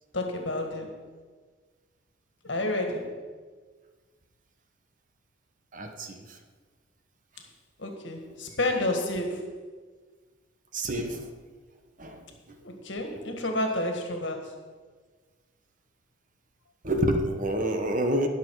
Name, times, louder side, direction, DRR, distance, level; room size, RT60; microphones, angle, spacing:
voice 1, 0.1-1.0 2.4-3.1 7.8-9.5 12.6-14.5, left 1 dB, 65° left, 3 dB, 1.8 m, -30 dB
voice 2, 5.7-6.4 10.7-11.3 12.0-12.6 16.8-18.3, right 1 dB, 40° right, 5 dB, 1.1 m, -28 dB
19.5 x 7.0 x 4.8 m, 1.5 s
head